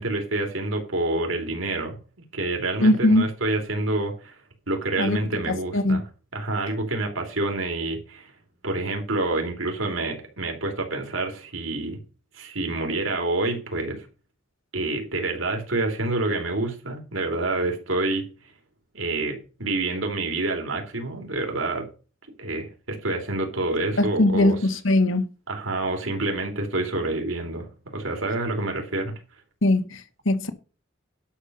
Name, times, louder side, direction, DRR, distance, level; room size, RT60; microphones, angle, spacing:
voice 1, 0.0-2.0 2.3-4.4 4.7-6.0 6.3-8.3 8.6-12.0 12.3-14.1 14.7-18.2 18.9-21.9 22.4-24.6 25.5-27.7 27.9-29.1, right 2 dB, 90° right, 3.5 m, -27 dB
voice 2, 2.8-3.2 5.0-5.2 5.5-6.0 24.0-25.2 29.6-30.5, left 1 dB, 80° left, 1.5 m, -20 dB
11.5 x 6.5 x 5.6 m
head